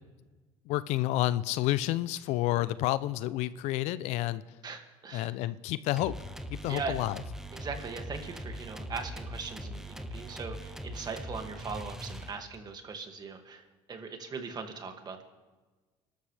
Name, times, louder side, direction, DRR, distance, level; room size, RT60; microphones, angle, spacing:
voice 1, 0.7-4.4 5.1-6.1 6.5-7.2, left 15 dB, 70° left, 16 dB, 0.5 m, -30 dB
voice 2, 4.6-5.3 6.7-7.0 7.5-13.6 13.9-15.2, right 5 dB, 35° right, 5 dB, 2.2 m, -40 dB
sound 1, 6.0-12.7, equal, 5° right, 1.2 m, -41 dB
26.0 x 13.0 x 3.4 m, 1.3 s
supercardioid pair, 90°, 12 cm